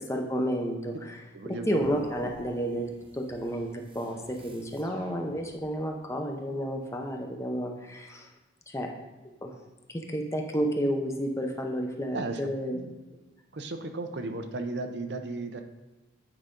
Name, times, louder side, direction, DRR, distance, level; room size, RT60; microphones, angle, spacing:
voice 1, 0.1-1.1 1.7-8.3 8.7-8.9 9.2-9.5 9.9-12.8, equal, 15° left, 2 dB, 0.7 m, -31 dB
voice 2, 1.3-1.9 12.1-12.9 13.5-15.6, right 3 dB, 60° right, 6 dB, 0.6 m, -35 dB
sound 1, 1.8-5.9, right 1 dB, 30° right, 1.0 m, -52 dB
9.0 x 5.0 x 3.8 m, 1.1 s
head